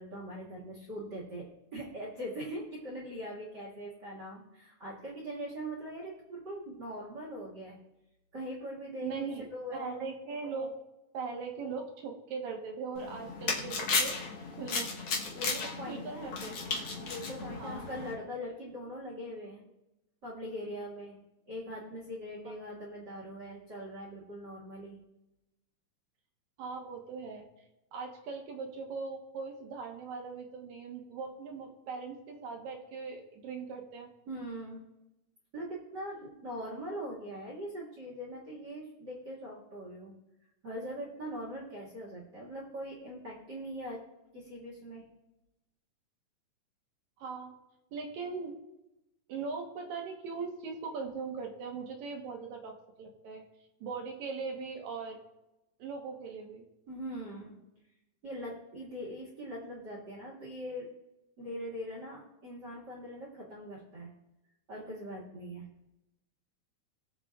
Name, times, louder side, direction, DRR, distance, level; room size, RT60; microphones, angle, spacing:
voice 1, 0.0-7.8 8.3-9.2 9.5-9.9 14.5-15.0 15.2-16.3 17.1-19.6 20.2-21.2 21.5-25.0 34.3-34.8 35.5-40.1 40.6-44.0 44.3-45.1 56.9-57.6 58.2-60.9 61.4-64.1 64.7-65.7, equal, 40° right, -5 dB, 2.3 m, -41 dB
voice 2, 9.0-10.8 11.1-14.2 14.6-14.9 15.9-16.5 17.6-17.9 26.6-27.5 27.9-34.1 47.2-47.5 47.9-48.5 49.3-53.4 53.8-55.2 55.8-56.7, right 4 dB, 70° right, 1 dB, 2.6 m, -40 dB
sound 1, 13.0-18.1, left 4 dB, 55° left, 1.7 m, -35 dB
21.0 x 7.4 x 2.4 m, 0.94 s
omnidirectional pair, 3.5 m